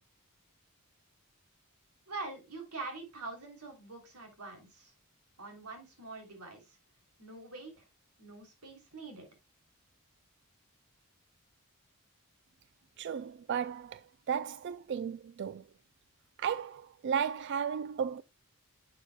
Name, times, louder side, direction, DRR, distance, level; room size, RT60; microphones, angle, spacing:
voice 1, 2.1-4.9 5.4-6.8 7.2-7.7 8.2-9.3, right 3 dB, 85° right, 3.2 m, -44 dB
voice 2, 13.0-14.0 14.3-15.6 16.4-18.2, right 7 dB, 50° right, 0.3 m, -34 dB
11.0 x 6.7 x 2.2 m
head